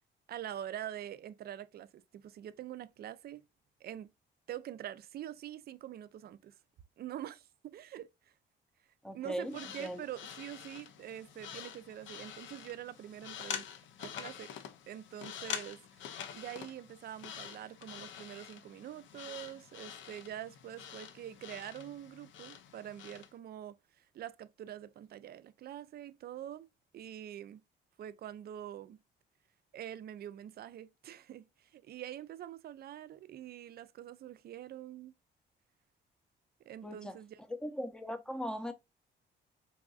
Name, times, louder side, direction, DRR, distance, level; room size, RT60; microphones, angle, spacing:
voice 1, 0.3-3.4 3.8-4.1 4.5-6.6 7.0-8.1 9.1-13.7 14.0-14.5 14.9-26.7 26.9-27.6 28.0-29.0 29.7-35.1 36.6-37.4, right 11 dB, 50° right, 0.4 m, -45 dB
voice 2, 9.0-10.0 36.8-37.2 37.5-38.7, equal, 5° left, 0.6 m, -39 dB
sound 1, 9.4-23.3, left 8 dB, 70° left, 0.5 m, -46 dB
4.0 x 2.5 x 2.3 m
cardioid pair, 90°, 20 cm